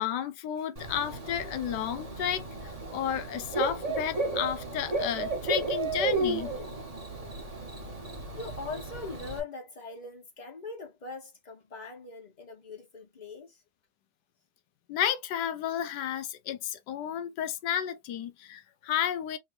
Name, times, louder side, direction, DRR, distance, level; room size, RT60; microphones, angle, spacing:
voice 1, 0.0-6.5 14.9-19.4, left 10 dB, 75° left, 1.2 m, -32 dB
Bird / Cricket, 0.8-9.4, right 2 dB, 20° right, 1.4 m, -33 dB
voice 2, 8.3-13.6, left 4 dB, 30° left, 1.1 m, -41 dB
3.9 x 3.2 x 2.7 m
omnidirectional pair, 1.9 m